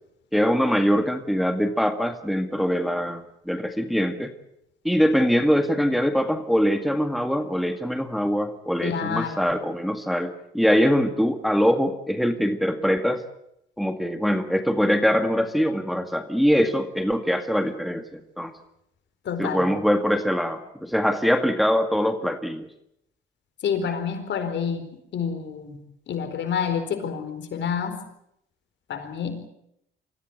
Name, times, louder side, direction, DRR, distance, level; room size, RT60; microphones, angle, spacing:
voice 1, 0.3-4.3 4.8-13.2 13.8-18.5 19.4-22.7 23.8-23.9, equal, ahead, 7 dB, 1.9 m, -23 dB
voice 2, 8.8-9.5 19.2-19.7 23.6-25.8 26.1-28.0 28.9-29.4, left 7 dB, 65° left, 7 dB, 4.5 m, -28 dB
25.0 x 15.0 x 9.4 m, 0.78 s
cardioid pair, 90°, 20 cm